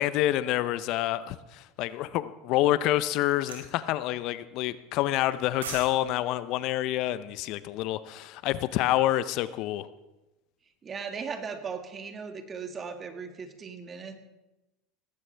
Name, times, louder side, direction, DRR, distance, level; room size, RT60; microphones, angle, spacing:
voice 1, 0.0-9.9, left 14 dB, 60° left, 15 dB, 0.6 m, -27 dB
sound 1, 3.5-3.7 5.3-5.9 6.2-6.4, right 6 dB, 90° right, 2.9 m, -38 dB
voice 2, 10.8-14.2, right 5 dB, 30° right, 6 dB, 2.1 m, -37 dB
18.5 x 15.5 x 3.4 m, 1.0 s
hypercardioid pair, 90°, 0 cm